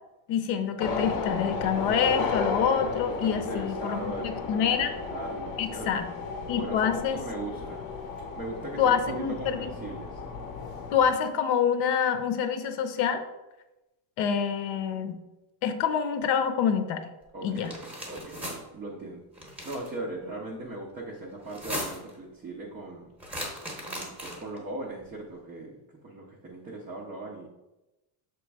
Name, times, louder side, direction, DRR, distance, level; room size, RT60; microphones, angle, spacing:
voice 1, 0.3-4.9 5.6-6.1 6.5-7.2 8.8-9.7 10.9-13.2 14.2-15.2 15.6-17.0 17.4-17.7, left 7 dB, 75° left, 8 dB, 0.8 m, -26 dB
sound 1, 0.8-11.1, left 4 dB, 40° left, 0.6 m, -34 dB
voice 2, 3.2-6.0 6.5-7.8 8.3-10.2 17.3-23.1 23.8-25.8 26.0-27.5, right 2 dB, 20° right, -3 dB, 0.3 m, -39 dB
sound 2, 17.5-18.6 19.3-19.9 21.4-22.1 23.2-24.6, equal, 5° right, 0.7 m, -37 dB
6.8 x 3.1 x 4.5 m, 0.99 s
cardioid pair, 180°, 49 cm